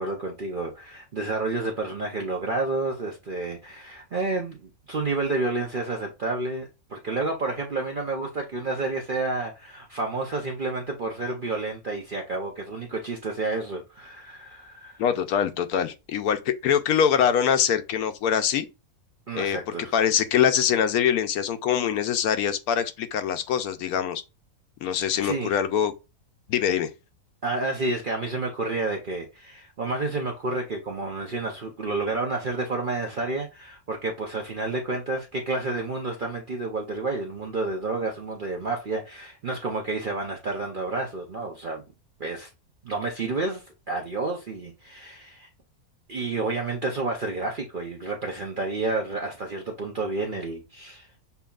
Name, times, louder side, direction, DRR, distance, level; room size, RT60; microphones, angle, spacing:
voice 1, 0.0-15.0 19.3-19.9 25.2-25.5 27.4-41.8 42.2-42.5 42.8-45.5 46.1-51.1, right 3 dB, 50° right, 0.7 m, -30 dB
voice 2, 15.0-18.7 19.3-19.6 19.9-24.2 24.8-25.9 26.5-26.9, left 8 dB, 80° left, 1.1 m, -23 dB
6.9 x 2.7 x 2.3 m
omnidirectional pair, 1.5 m